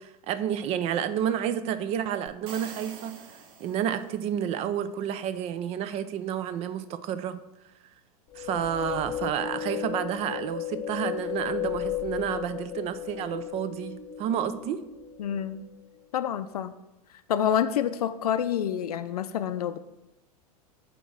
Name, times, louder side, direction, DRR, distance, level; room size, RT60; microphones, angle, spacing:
voice 1, 0.0-7.4 8.4-14.8, right 9 dB, 30° right, 13 dB, 0.4 m, -30 dB
sound 1, 2.3-4.3, right 6 dB, 60° right, 0.9 m, -45 dB
sound 2, 8.3-15.7, left 10 dB, 25° left, 0.9 m, -35 dB
voice 2, 15.2-15.6 16.1-16.7 17.3-19.8, left 9 dB, 70° left, 12 dB, 0.5 m, -27 dB
5.3 x 4.2 x 5.9 m, 0.97 s
hypercardioid pair, 95°, 20 cm